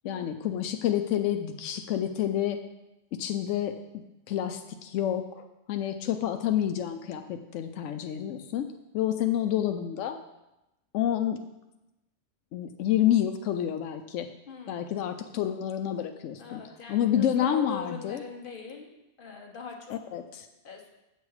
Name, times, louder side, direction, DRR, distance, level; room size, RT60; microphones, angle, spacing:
voice 1, 0.0-2.6 3.1-8.7 8.9-10.2 10.9-11.4 12.5-14.3 14.7-16.6 16.9-18.2 20.1-20.5, left 11 dB, 90° left, 7 dB, 0.9 m, -29 dB
voice 2, 14.5-14.9 16.4-18.9 19.2-20.0 20.6-20.9, left 5 dB, 45° left, 1 dB, 1.3 m, -41 dB
8.4 x 6.8 x 4.7 m, 0.95 s
omnidirectional pair, 1.2 m